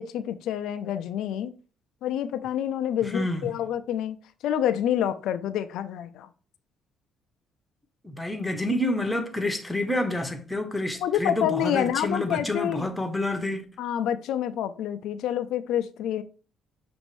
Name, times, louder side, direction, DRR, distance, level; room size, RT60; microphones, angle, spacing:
voice 1, 0.0-1.5 2.0-4.2 4.4-6.3 11.0-12.9 13.8-16.2, left 10 dB, 80° left, 0.4 m, -28 dB
voice 2, 3.0-3.6 8.0-13.6, left 1 dB, 10° left, 0.8 m, -28 dB
6.1 x 2.5 x 3.2 m
cardioid pair, 110°, 0 cm